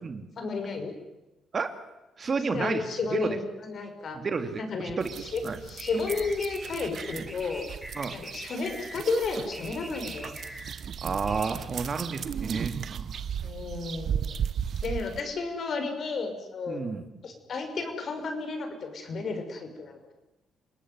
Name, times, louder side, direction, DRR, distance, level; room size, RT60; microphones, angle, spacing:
voice 1, 0.4-0.9 2.5-4.2 4.6-7.7 8.1-10.3 13.4-14.4 14.8-16.8 17.2-20.1, left 4 dB, 55° left, 6 dB, 6.2 m, -32 dB
voice 2, 2.2-3.4 4.1-5.1 5.4-5.6 7.1-7.2 7.9-8.2 11.0-13.2 16.7-17.0, right 5 dB, 40° right, 8 dB, 2.6 m, -31 dB
sound 1, 5.0-15.2, right 8 dB, 60° right, 1.1 m, -36 dB
sound 2, 5.6-11.5, equal, ahead, 4.8 m, -44 dB
28.0 x 19.0 x 9.7 m, 0.99 s
cardioid pair, 90°, 0 cm